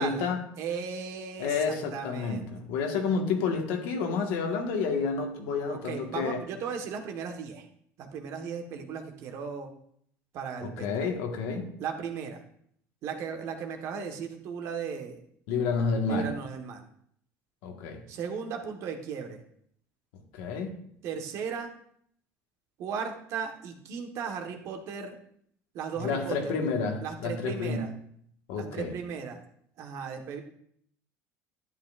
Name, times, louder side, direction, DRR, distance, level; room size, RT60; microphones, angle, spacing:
voice 1, 0.0-0.4 1.4-6.4 10.6-11.7 15.5-16.3 17.6-18.0 20.3-20.8 26.0-27.9 28.5-28.9, left 5 dB, 80° left, 3 dB, 1.5 m, -30 dB
voice 2, 0.6-2.5 5.7-7.7 8.0-9.7 10.3-11.1 11.8-12.4 13.0-15.2 16.1-16.8 18.1-19.4 21.0-21.7 22.8-25.2 25.7-26.5 27.0-27.9 28.5-29.4 29.8-30.4, right 6 dB, 60° right, 4 dB, 1.4 m, -36 dB
11.5 x 8.5 x 2.5 m, 0.66 s
cardioid pair, 120°, 6 cm